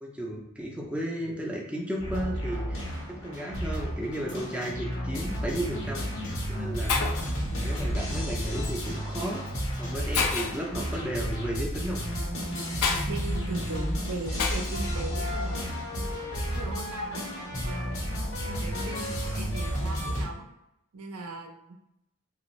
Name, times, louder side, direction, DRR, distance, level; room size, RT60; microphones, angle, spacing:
voice 1, 0.0-2.8 3.2-7.1 7.4-9.4 9.8-12.0, right 1 dB, 5° right, -2 dB, 0.4 m, -34 dB
sound 1, 2.0-20.2, equal, 70° left, 1.2 m, -32 dB
sound 2, 4.3-4.4 4.6-4.7 5.2-5.3 5.5-5.6 6.2-6.3 6.9-7.0 7.2-7.3 7.8-7.9 8.1-8.2 8.9-9.0 9.8-9.9, left 4 dB, 40° left, 0.7 m, -40 dB
Shatter, 5.7-5.9 6.6-6.7 6.9-7.3 8.6-8.8 9.5-9.6 10.1-10.7 12.8-13.1 14.4-14.8, left 5 dB, 90° left, 0.5 m, -28 dB
voice 2, 13.1-15.6 16.0-17.2 17.6-18.1 18.4-20.4 20.9-21.8, right 2 dB, 85° right, 3 dB, 0.6 m, -39 dB
3.2 x 2.6 x 3.0 m, 0.83 s
head